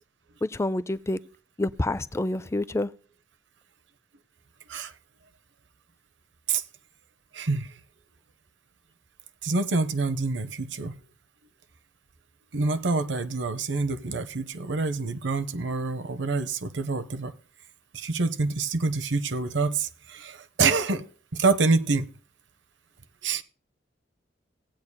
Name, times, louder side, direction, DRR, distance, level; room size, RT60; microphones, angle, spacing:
voice 1, 0.4-1.2 1.6-2.9, left 2 dB, 15° left, 0.4 m, -27 dB
voice 2, 7.3-7.7 9.4-10.9 12.5-17.3 17.9-21.1 21.3-22.1 23.2-23.4, right 3 dB, 85° right, 0.7 m, -26 dB
18.0 x 8.4 x 2.2 m
head